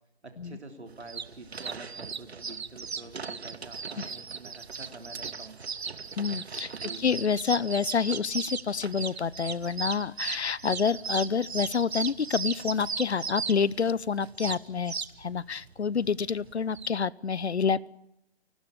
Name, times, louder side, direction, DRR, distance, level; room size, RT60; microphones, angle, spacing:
voice 1, 0.2-5.6 6.7-7.0, right 2 dB, 90° right, 5 dB, 3.4 m, -47 dB
sound 1, 0.9-16.9, right 5 dB, 70° right, 1.2 m, -37 dB
voice 2, 6.2-17.9, left 6 dB, 80° left, 23 dB, 0.8 m, -28 dB
29.5 x 12.5 x 7.0 m, 0.80 s
figure-of-eight pair, 150°, 33 cm